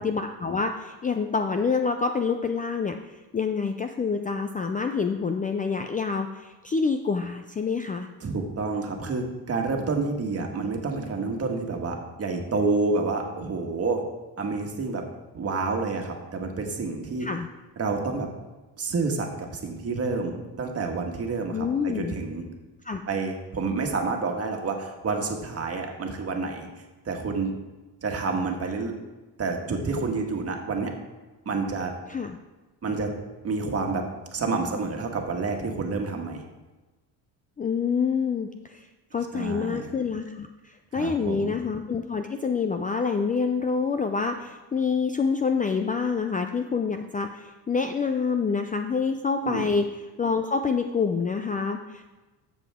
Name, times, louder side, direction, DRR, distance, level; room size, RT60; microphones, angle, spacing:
voice 1, 0.0-2.9 3.3-8.1 17.2-17.5 21.5-22.1 22.8-23.0 32.1-32.4 37.6-38.9 39.1-49.9 50.2-52.1, left 5 dB, 20° left, 6 dB, 0.4 m, -27 dB
voice 2, 8.2-14.0 14.4-15.1 15.3-17.3 17.8-18.3 18.8-22.5 23.1-26.7 27.0-27.6 28.0-28.9 29.4-30.9 31.4-31.9 32.8-33.1 33.4-36.4 39.3-39.8 40.9-41.6 49.4-49.7, right 3 dB, 35° right, 3 dB, 1.6 m, -29 dB
13.5 x 7.2 x 3.6 m, 1.2 s
cardioid pair, 110°, 41 cm